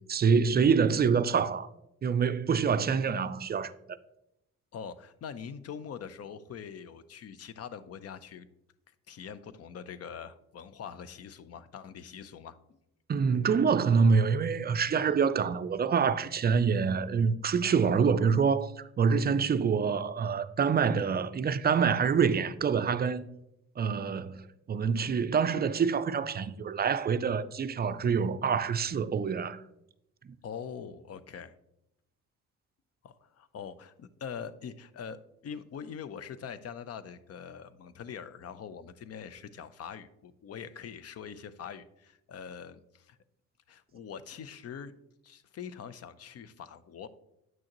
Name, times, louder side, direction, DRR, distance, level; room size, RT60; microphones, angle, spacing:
voice 1, 0.1-1.7 2.0-4.0 13.1-23.2 23.8-29.6, right 6 dB, 35° right, 0.4 m, -26 dB
voice 2, 4.7-8.5 9.1-12.8 30.4-31.5 33.0-43.2 43.7-44.9 45.2-47.1, left 7 dB, 55° left, 0.6 m, -43 dB
8.9 x 6.3 x 2.9 m
cardioid pair, 90°, 30 cm